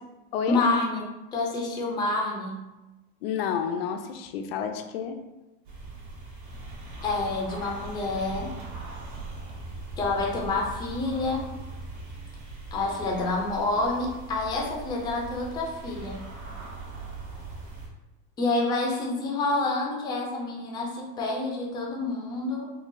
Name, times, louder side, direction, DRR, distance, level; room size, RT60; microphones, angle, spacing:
voice 1, 0.5-1.0 1.3-2.6 7.0-8.5 10.0-11.5 12.7-16.2 18.4-22.6, left 2 dB, 15° left, -1 dB, 0.4 m, -28 dB
voice 2, 3.2-5.2, left 7 dB, 80° left, 6 dB, 0.5 m, -30 dB
sound 1, 5.6-17.9, right 2 dB, 60° right, 1.2 m, -40 dB
3.7 x 2.3 x 2.6 m, 1.0 s
supercardioid pair, 150°, 29 cm